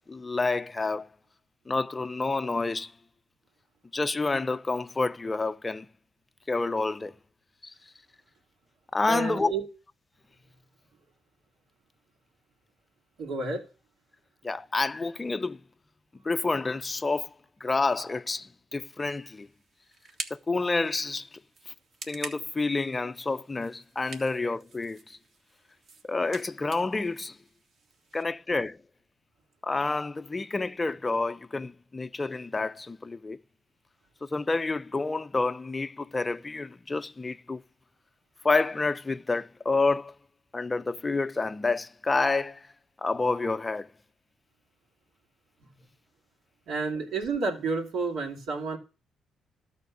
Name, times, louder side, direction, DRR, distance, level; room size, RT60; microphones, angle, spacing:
voice 1, 0.1-1.1 1.7-2.9 3.9-5.9 6.5-7.1 7.6-7.7 8.9-9.5 14.4-15.6 16.2-17.3 17.6-19.5 20.3-21.4 22.1-25.2 26.0-27.4 28.1-28.8 29.6-33.4 34.2-37.6 38.4-40.1 40.5-42.7 43.0-43.9, left 3 dB, 20° left, 0.4 m, -29 dB
voice 2, 9.1-9.6 13.2-13.7 46.7-48.8, right 4 dB, 75° right, 2.7 m, -30 dB
sound 1, 19.0-28.2, right 4 dB, 60° right, 1.6 m, -46 dB
13.0 x 4.3 x 8.3 m
cardioid pair, 90°, 0 cm